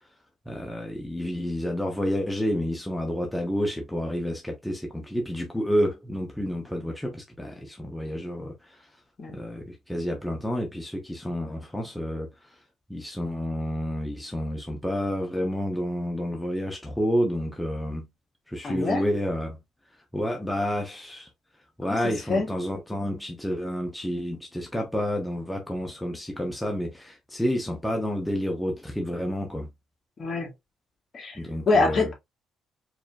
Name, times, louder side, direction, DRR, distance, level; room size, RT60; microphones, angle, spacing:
voice 1, 0.5-8.8 9.3-12.3 12.9-18.1 18.5-19.6 20.1-21.3 21.8-29.7 31.3-32.1, equal, 5° left, 1.1 m, -29 dB
voice 2, 18.6-19.0 21.9-22.0 22.3-22.5 30.2-30.5 31.1-31.4 31.7-32.1, left 3 dB, 45° left, 1.9 m, -24 dB
4.9 x 3.0 x 2.4 m
cardioid pair, 90°, 0 cm